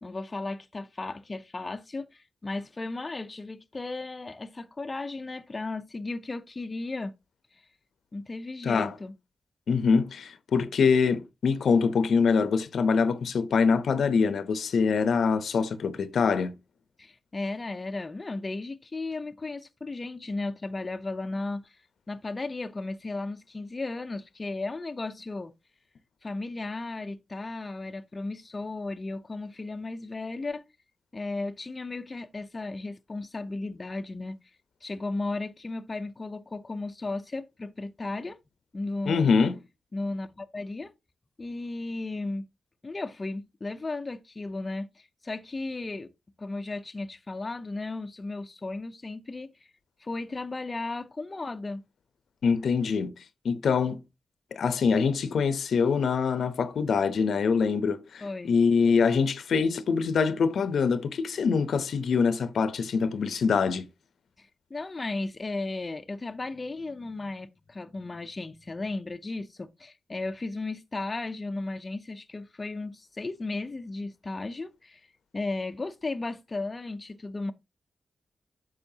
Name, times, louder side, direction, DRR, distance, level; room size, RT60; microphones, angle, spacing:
voice 1, 0.0-7.1 7.5-7.7 8.1-9.1 17.0-21.8 22.1-25.5 26.2-30.6 31.1-34.4 34.8-38.4 38.7-39.3 39.9-40.9 41.4-42.5 42.8-46.1 46.4-49.7 50.0-51.8 58.2-58.6 64.4-75.1 75.3-77.5, left 2 dB, 25° left, 0.6 m, -35 dB
voice 2, 8.6-8.9 9.7-16.5 39.1-39.6 52.4-53.1 53.4-54.0 54.5-63.9, left 5 dB, 75° left, 0.8 m, -24 dB
8.9 x 6.3 x 2.8 m
wide cardioid pair, 120°, 0 cm